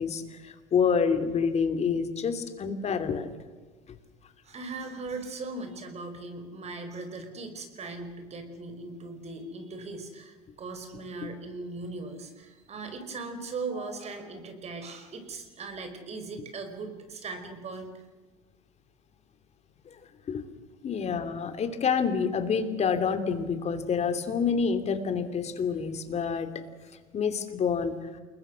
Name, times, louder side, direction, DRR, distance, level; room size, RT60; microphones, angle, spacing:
voice 1, 0.0-3.3 19.9-20.0 20.3-20.4 20.8-26.5 27.1-27.9, left 6 dB, 35° left, 9 dB, 3.0 m, -27 dB
voice 2, 4.4-18.1, right 3 dB, 35° right, 7 dB, 5.0 m, -39 dB
28.5 x 21.5 x 6.4 m, 1.4 s
hypercardioid pair, 75°, 19 cm